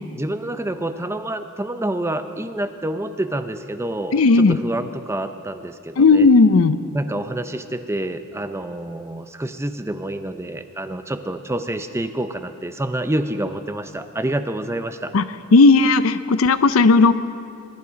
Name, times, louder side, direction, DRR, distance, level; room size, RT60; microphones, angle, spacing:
voice 1, 0.2-6.3 6.9-15.1, right 1 dB, 15° right, 9 dB, 0.6 m, -27 dB
voice 2, 4.1-4.6 6.0-6.8 15.1-15.2 15.5-17.1, left 3 dB, 80° left, 13 dB, 0.6 m, -14 dB
21.0 x 11.0 x 5.1 m, 2.4 s
head